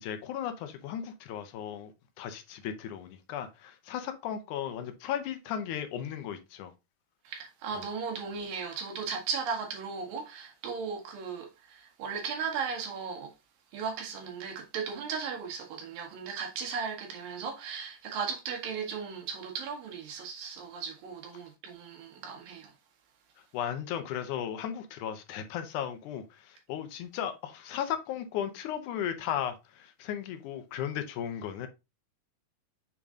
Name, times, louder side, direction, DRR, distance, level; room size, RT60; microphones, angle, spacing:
voice 1, 0.0-1.9 2.2-6.7 23.5-31.7, left 9 dB, 75° left, 2.1 m, -36 dB
voice 2, 7.2-13.3 13.7-22.7, right 5 dB, 85° right, 3.1 m, -36 dB
7.0 x 3.7 x 3.6 m
omnidirectional pair, 3.9 m